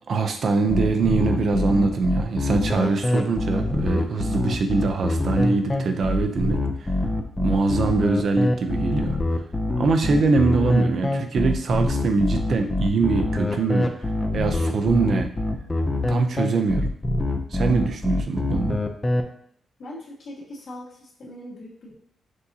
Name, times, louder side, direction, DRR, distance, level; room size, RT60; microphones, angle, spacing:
voice 1, 0.1-6.9 7.4-9.2 9.8-13.9 14.3-15.3 16.1-16.9 17.5-18.8, right 4 dB, 55° right, 6 dB, 0.4 m, -23 dB
sound 1, 0.7-19.2, left 2 dB, 15° left, 0.4 m, -24 dB
voice 2, 19.8-21.9, left 1 dB, 65° left, -5 dB, 1.7 m, -40 dB
6.1 x 2.7 x 2.7 m, 0.62 s
wide cardioid pair, 150°, 0 cm